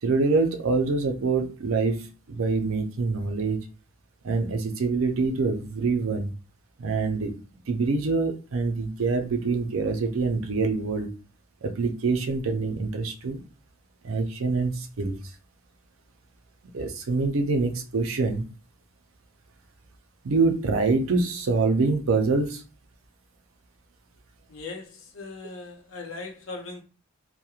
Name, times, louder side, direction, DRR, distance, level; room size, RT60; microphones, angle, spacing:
voice 1, 0.0-3.6 4.2-6.3 6.8-7.3 7.7-11.1 11.6-13.4 14.0-15.2 16.7-18.5 20.2-22.6, right 4 dB, 85° right, 0.5 m, -25 dB
voice 2, 24.5-26.8, left 3 dB, 75° left, 0.7 m, -39 dB
2.9 x 2.1 x 2.3 m
head